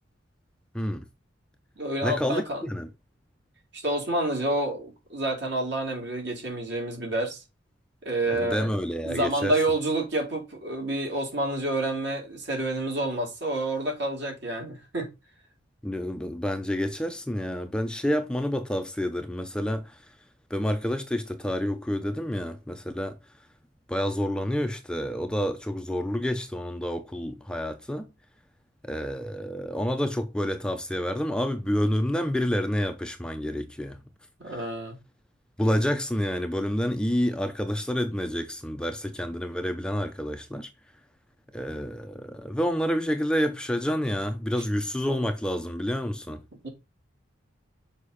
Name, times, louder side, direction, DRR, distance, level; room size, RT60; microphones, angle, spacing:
voice 1, 0.7-1.0 2.0-2.9 8.3-9.6 15.8-20.0 20.5-23.2 23.9-28.1 28.8-34.0 35.6-40.7 41.5-46.4, equal, 5° left, 0.6 m, -28 dB
voice 2, 1.8-2.7 3.7-7.4 8.0-15.1 34.4-35.0 46.6-46.7, right 1 dB, 60° right, 4.4 m, -29 dB
6.6 x 5.2 x 5.6 m
head